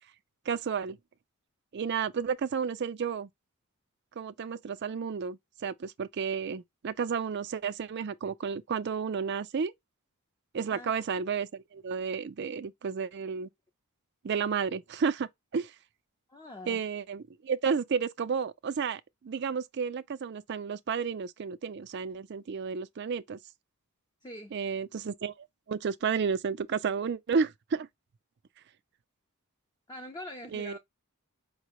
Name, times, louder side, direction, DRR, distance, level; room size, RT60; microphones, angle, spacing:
voice 1, 0.5-1.0 1.7-3.3 4.2-9.7 10.5-13.5 14.2-15.7 16.7-23.4 24.5-25.3 25.7-27.9 30.5-30.8, right 6 dB, 50° right, 0.4 m, -32 dB
voice 2, 16.3-16.8 24.2-24.5 29.9-30.8, left 1 dB, 20° left, 0.5 m, -43 dB
4.9 x 2.1 x 3.0 m
head